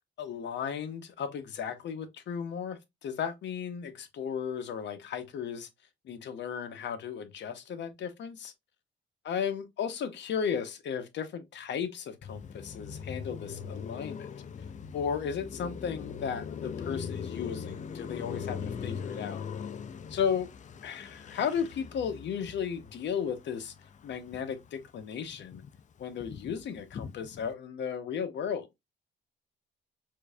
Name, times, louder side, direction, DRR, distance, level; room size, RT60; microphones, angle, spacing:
voice 1, 0.2-5.7 6.0-8.5 9.2-14.3 14.9-19.4 20.1-20.5 20.8-23.7 24.0-25.6 26.0-28.7, left 7 dB, 65° left, 0.8 m, -35 dB
Car passing by, 12.2-24.7 25.0-27.5, left 6 dB, 40° left, 0.4 m, -41 dB
4.5 x 2.6 x 2.3 m
cardioid pair, 90°, 20 cm